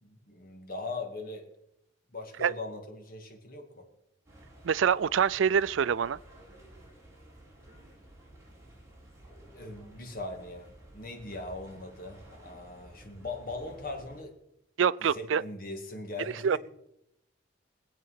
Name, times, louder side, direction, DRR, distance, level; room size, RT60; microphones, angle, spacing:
voice 1, 0.0-1.5 2.1-3.9 9.5-14.3 15.0-16.6, left 2 dB, 50° left, 2.2 m, -40 dB
sound 1, 4.3-14.2, right 1 dB, 15° right, 4.2 m, -53 dB
voice 2, 4.6-6.2 14.8-15.4 16.4-16.6, right 7 dB, 85° right, 0.4 m, -25 dB
21.5 x 7.6 x 5.8 m
head